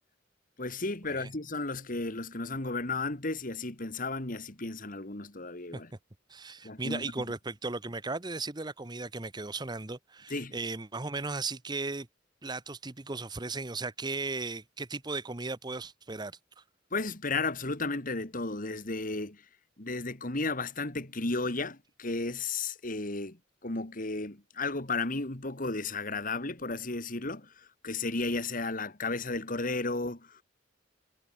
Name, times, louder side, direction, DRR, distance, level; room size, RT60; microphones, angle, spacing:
voice 1, 0.6-5.9 6.6-7.1 10.3-10.6 16.9-19.4 19.8-30.4, left 3 dB, 45° left, 2.2 m, -34 dB
voice 2, 6.3-12.1 12.4-16.4, right 3 dB, 20° right, 1.0 m, -36 dB
head